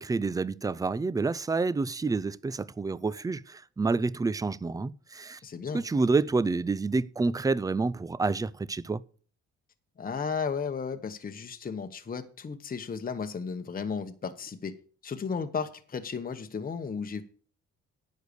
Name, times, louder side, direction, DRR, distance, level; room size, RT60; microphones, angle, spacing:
voice 1, 0.0-5.4 5.7-9.0, right 3 dB, 10° right, 0.4 m, -28 dB
voice 2, 5.4-5.8 10.0-14.8 15.0-17.2, left 5 dB, 30° left, 0.9 m, -34 dB
10.0 x 6.5 x 6.6 m
cardioid pair, 90°, 30 cm